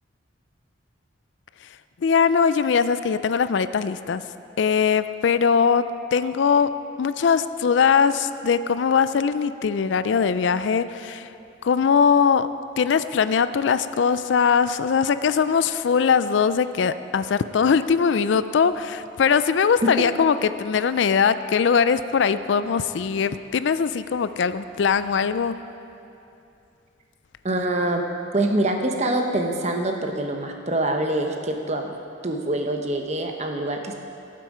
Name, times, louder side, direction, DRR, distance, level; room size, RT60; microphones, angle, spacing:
voice 1, 2.0-4.2 4.6-5.8 6.1-6.7 7.0-11.3 11.6-12.5 12.8-25.5, left 6 dB, 70° left, 13 dB, 0.4 m, -21 dB
voice 2, 27.4-28.0 28.3-32.0 32.2-33.9, right 1 dB, 35° right, 3 dB, 0.9 m, -25 dB
18.0 x 7.6 x 5.0 m, 2.7 s
head